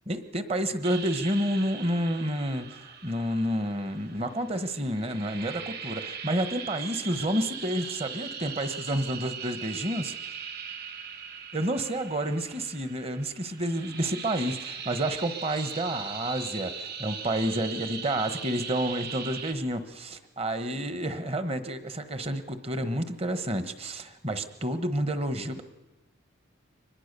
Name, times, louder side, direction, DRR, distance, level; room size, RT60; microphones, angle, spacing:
voice 1, 0.1-10.2 11.5-25.6, right 1 dB, 30° right, 10 dB, 1.3 m, -30 dB
sound 1, 0.8-19.5, right 6 dB, 50° right, 2.4 m, -40 dB
24.5 x 20.5 x 6.8 m, 1.1 s
head